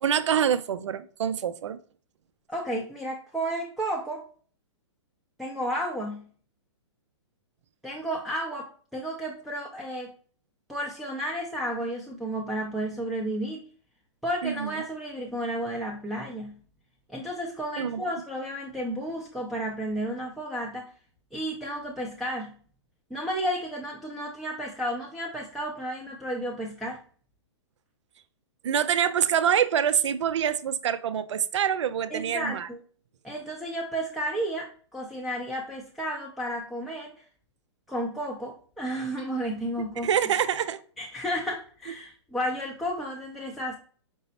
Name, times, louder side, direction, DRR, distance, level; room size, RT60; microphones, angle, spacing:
voice 1, 0.0-1.8 14.4-14.7 17.8-18.0 28.6-32.7 40.0-40.8, right 8 dB, 75° right, 0.4 m, -25 dB
voice 2, 2.5-4.2 5.4-6.3 7.8-10.1 10.7-13.6 14.2-16.6 17.1-20.9 21.3-22.5 23.1-27.0 32.1-32.8 33.2-37.1 37.9-40.1 41.0-43.8, equal, ahead, 0.5 m, -32 dB
5.3 x 2.0 x 4.0 m
hypercardioid pair, 135°, 15 cm